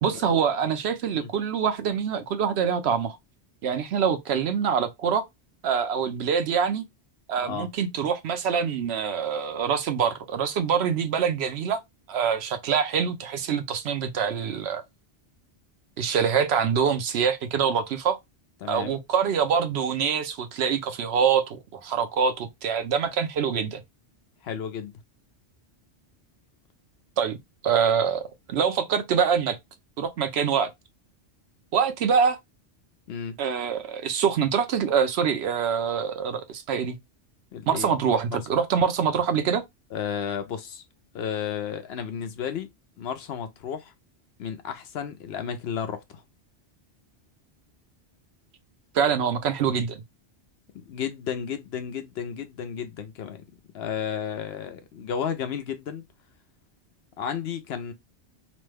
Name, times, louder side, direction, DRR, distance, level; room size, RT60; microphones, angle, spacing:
voice 1, 0.0-3.2 3.6-5.2 5.6-6.9 7.3-11.8 12.1-14.8 16.0-18.2 18.7-23.8 27.2-27.4 27.6-29.6 30.0-30.7 31.7-32.4 33.4-37.0 37.7-39.6 48.9-50.0, right 7 dB, 70° right, 0.8 m, -25 dB
voice 2, 18.6-19.0 24.4-24.9 33.1-33.4 37.5-37.9 38.3-38.4 39.9-40.8 41.1-42.7 43.0-43.9 44.4-46.2 50.7-53.4 53.7-56.0 57.2-57.9, left 7 dB, 70° left, 0.8 m, -33 dB
3.0 x 2.2 x 3.2 m
omnidirectional pair, 1.2 m